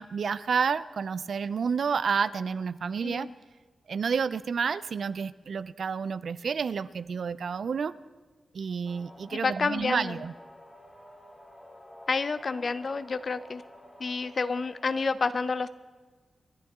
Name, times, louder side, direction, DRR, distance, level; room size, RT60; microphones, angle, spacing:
voice 1, 0.0-3.3 3.9-7.9 8.5-10.3, right 6 dB, 65° right, 16 dB, 0.5 m, -30 dB
sound 1, 8.8-15.0, left 1 dB, 20° left, 2.3 m, -50 dB
voice 2, 9.3-10.2 12.1-13.6 14.0-15.7, left 4 dB, 50° left, 14 dB, 0.6 m, -29 dB
28.0 x 11.5 x 3.7 m, 1.4 s
wide cardioid pair, 95°, 0 cm